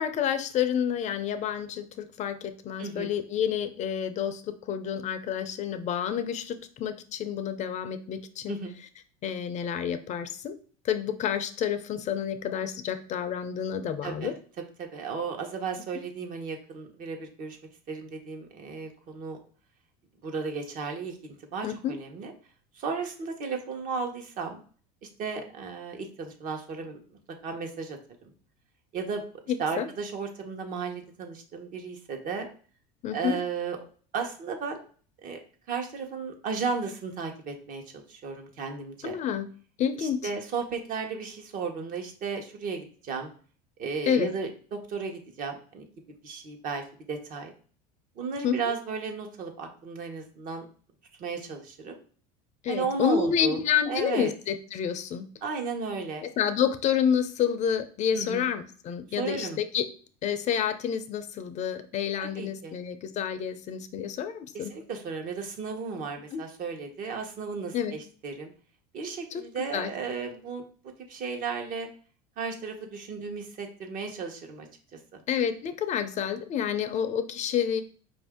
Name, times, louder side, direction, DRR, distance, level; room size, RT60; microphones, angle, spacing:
voice 1, 0.0-8.6 9.2-10.5 10.8-14.3 21.6-21.9 29.5-29.9 33.0-33.4 39.0-39.5 39.8-40.3 44.1-44.3 48.4-48.6 52.6-55.3 56.2-59.8 60.2-64.7 66.3-66.4 67.7-67.9 69.3-69.4 69.7-69.9 75.3-77.8, left 8 dB, 40° left, 10 dB, 0.5 m, -29 dB
voice 2, 2.8-3.1 8.5-8.8 14.0-14.3 14.8-17.6 17.9-19.4 20.2-22.3 22.7-24.6 25.0-27.0 27.4-28.0 28.9-29.2 29.6-32.5 33.1-33.9 34.1-34.8 35.2-35.4 35.7-39.1 40.0-43.3 43.8-45.9 46.2-47.5 48.2-50.7 51.2-52.0 52.7-53.6 53.9-54.3 55.4-56.2 58.1-58.5 59.2-59.6 62.2-62.7 64.5-68.5 68.9-70.6 71.1-71.9 72.4-74.7 75.1-75.2, right 5 dB, 45° right, 4 dB, 1.0 m, -34 dB
4.8 x 2.6 x 3.5 m, 0.42 s
supercardioid pair, 115°, 19 cm